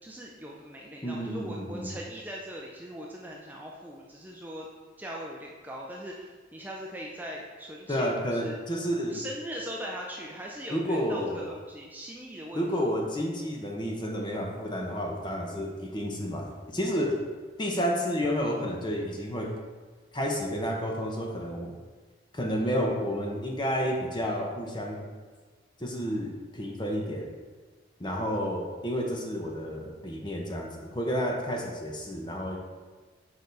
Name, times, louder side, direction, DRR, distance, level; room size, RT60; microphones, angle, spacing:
voice 1, 0.0-4.7 5.0-8.6 9.1-12.6, equal, 10° right, -2 dB, 0.5 m, -40 dB
voice 2, 1.0-2.0 7.9-9.2 10.7-11.4 12.5-17.2 17.6-19.5 20.1-21.7 22.3-25.1 25.8-27.3 28.0-32.6, equal, 25° left, 0 dB, 0.9 m, -30 dB
6.7 x 4.9 x 4.0 m, 1.4 s
head